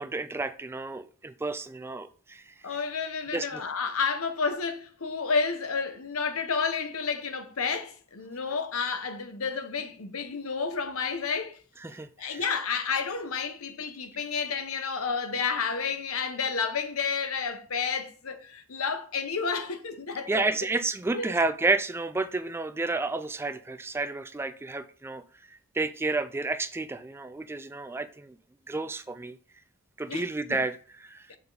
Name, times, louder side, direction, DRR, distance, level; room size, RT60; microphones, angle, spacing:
voice 1, 0.0-2.4 3.3-3.6 11.8-12.4 20.3-25.2 25.7-28.3 28.7-29.4 30.0-31.2, right 3 dB, 10° right, 0.3 m, -31 dB
voice 2, 2.6-11.6 12.2-20.5 21.1-21.3 30.1-30.3 31.3-31.4, left 5 dB, 75° left, 0.9 m, -30 dB
6.8 x 5.0 x 3.9 m
head